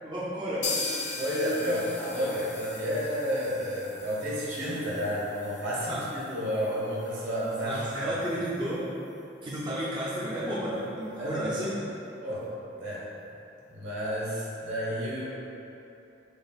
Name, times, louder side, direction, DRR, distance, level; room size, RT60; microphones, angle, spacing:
voice 1, 0.0-0.7 5.9-6.0 7.6-8.8 9.4-11.8, equal, 25° right, -9 dB, 0.4 m, -32 dB
sound 1, 0.6-8.4 8.7-8.8 9.1-9.2 9.6-9.7, left 4 dB, 40° left, 0.5 m, -39 dB
voice 2, 1.2-8.1 11.2-11.5 12.2-12.5 12.8-13.1 13.7-15.5, equal, 75° right, -8 dB, 1.2 m, -31 dB
6.5 x 2.3 x 2.4 m, 2.8 s
head